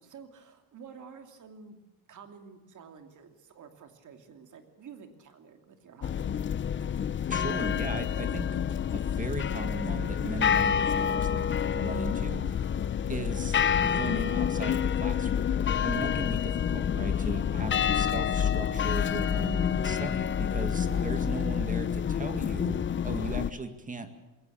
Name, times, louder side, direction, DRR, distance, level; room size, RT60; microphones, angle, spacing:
voice 1, 0.0-1.8 2.1-6.3 17.9-18.1 20.8-21.1 21.5-21.6, right 6 dB, 50° right, 6 dB, 2.9 m, -50 dB
sound 1, 6.0-23.5, left 8 dB, 30° left, 0.6 m, -28 dB
voice 2, 7.3-8.6 8.9-12.6 13.1-15.5 15.8-24.1, right 3 dB, 20° right, 9 dB, 2.0 m, -38 dB
22.0 x 18.0 x 8.6 m, 1.1 s
cardioid pair, 145°, 39 cm